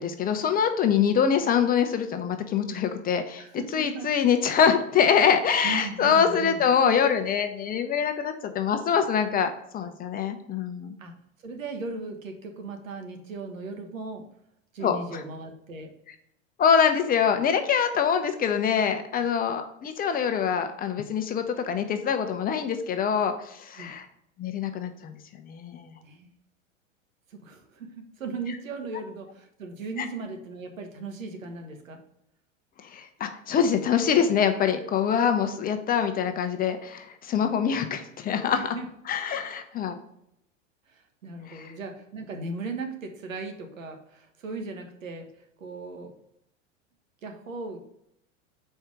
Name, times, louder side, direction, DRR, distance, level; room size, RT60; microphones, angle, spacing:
voice 1, 0.0-11.0 14.8-15.2 16.6-24.1 24.4-25.1 25.4-26.0 30.0-30.1 32.8-38.8 39.1-40.0 41.5-41.7, left 7 dB, 25° left, 8 dB, 0.6 m, -24 dB
voice 2, 3.4-4.1 5.6-6.7 11.0-11.1 11.4-14.2 14.7-15.9 19.2-19.3 23.8-23.9 26.0-26.3 27.3-32.0 37.4-37.5 38.5-38.9 40.9-45.3 45.6-46.1 47.2-47.8, right 3 dB, 85° right, 5 dB, 1.2 m, -37 dB
4.5 x 4.4 x 5.1 m, 0.77 s
hypercardioid pair, 105°, 38 cm